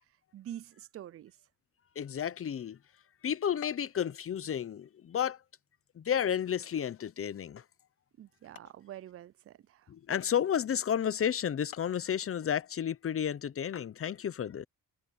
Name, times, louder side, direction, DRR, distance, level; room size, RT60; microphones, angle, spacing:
voice 1, 0.3-1.4 8.2-9.9, right 11 dB, 40° right, 0.4 m, -46 dB
voice 2, 2.0-2.8 3.2-5.4 6.0-7.6 9.9-14.7, left 9 dB, 40° left, 0.7 m, -32 dB
sound 1, 3.6-4.0 4.4-4.8 5.4-5.5 6.1-6.3 6.9-7.0 7.6-7.7 8.1-8.2 8.5-8.8 10.1-10.5 11.4-11.5 11.7-12.0, left 12 dB, 75° left, 1.4 m, -50 dB
cardioid pair, 135°, 34 cm